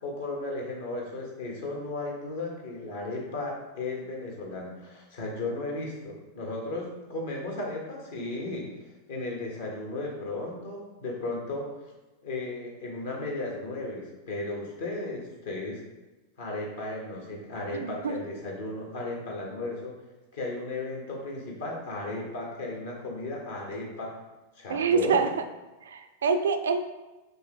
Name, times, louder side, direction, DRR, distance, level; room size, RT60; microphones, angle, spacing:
voice 1, 0.0-8.7 9.1-11.7 12.2-15.8 16.4-19.9 20.3-24.2 24.5-25.3, left 2 dB, 60° left, -1 dB, 1.2 m, -35 dB
voice 2, 17.7-18.2 24.7-25.3 25.8-26.8, right 5 dB, 65° right, 8 dB, 0.3 m, -26 dB
5.3 x 2.7 x 3.4 m, 1.1 s
figure-of-eight pair, 90°, 0 cm